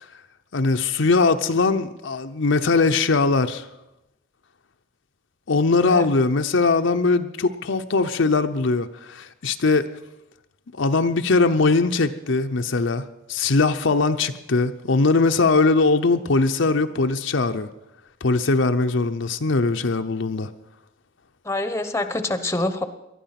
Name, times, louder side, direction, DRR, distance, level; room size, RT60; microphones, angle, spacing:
voice 1, 0.5-3.6 5.5-9.8 10.7-17.7 18.2-20.5, left 3 dB, 65° left, 0.7 m, -21 dB
voice 2, 21.4-22.9, left 2 dB, 15° left, 0.9 m, -26 dB
19.5 x 12.0 x 5.9 m
head